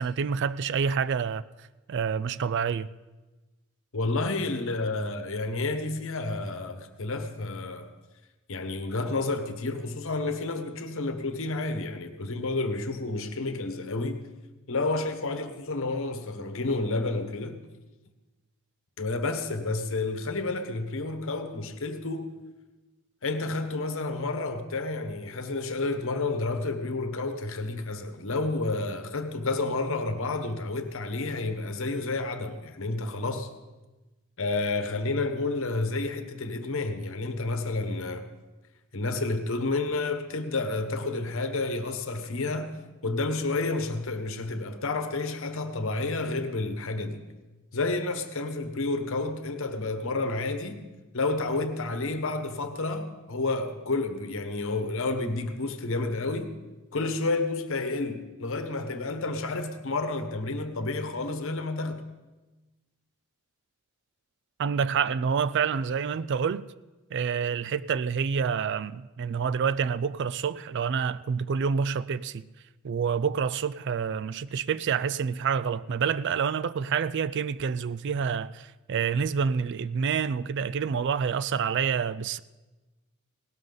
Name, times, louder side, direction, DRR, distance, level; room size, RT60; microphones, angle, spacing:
voice 1, 0.0-1.4 1.9-2.9 64.6-66.7 67.1-72.5 72.8-82.4, right 6 dB, 55° right, 0.4 m, -28 dB
voice 2, 3.9-7.9 8.5-14.3 14.7-17.6 19.0-22.3 23.2-33.5 34.4-38.3 38.9-42.7 43.0-47.2 47.7-50.8 51.1-56.5 56.9-62.0, left 3 dB, 65° left, 1.2 m, -30 dB
17.5 x 12.5 x 3.9 m
head